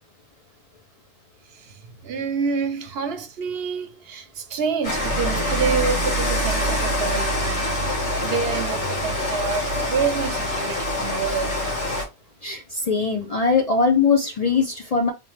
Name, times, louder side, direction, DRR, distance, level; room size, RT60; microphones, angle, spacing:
voice 1, 1.5-11.6, right 5 dB, 65° right, 0.8 m, -28 dB
Rain, 4.8-12.0, left 1 dB, 90° left, 2.0 m, -25 dB
voice 2, 12.4-15.1, left 5 dB, 45° left, 0.5 m, -21 dB
3.6 x 3.0 x 3.2 m
omnidirectional pair, 1.2 m